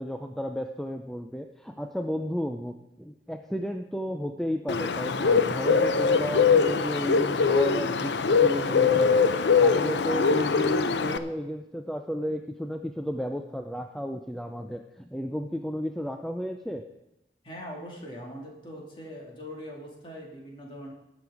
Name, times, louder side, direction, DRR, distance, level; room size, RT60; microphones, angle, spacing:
voice 1, 0.0-9.2 9.6-16.8, equal, ahead, 5 dB, 0.4 m, -33 dB
Bird, 4.7-11.2, left 5 dB, 85° left, 0.6 m, -22 dB
voice 2, 17.4-20.9, equal, 30° left, -2 dB, 2.3 m, -41 dB
18.0 x 6.2 x 4.9 m, 0.91 s
head